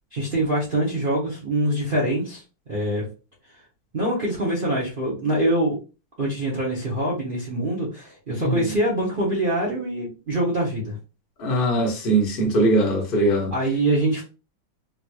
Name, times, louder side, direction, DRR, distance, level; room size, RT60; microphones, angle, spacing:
voice 1, 0.1-3.1 3.9-5.8 6.2-11.0 13.5-14.2, right 1 dB, 50° right, 0.6 m, -24 dB
voice 2, 11.4-13.5, right 1 dB, 40° left, 0.9 m, -21 dB
3.8 x 2.9 x 2.2 m
omnidirectional pair, 2.2 m